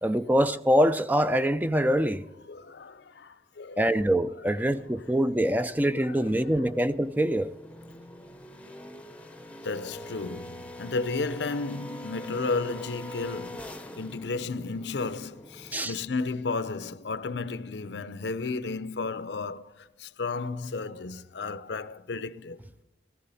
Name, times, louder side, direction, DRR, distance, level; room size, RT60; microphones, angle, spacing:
voice 1, 0.0-2.2 3.8-7.5 15.7-15.9, equal, 10° right, 0.4 m, -24 dB
voice 2, 2.5-3.9 4.5-4.8 5.6-5.7 6.0-6.3 9.6-22.6, left 3 dB, 85° left, 0.7 m, -33 dB
sound 1, 4.5-16.3, left 1 dB, 10° left, 0.8 m, -45 dB
15.5 x 15.0 x 4.2 m
head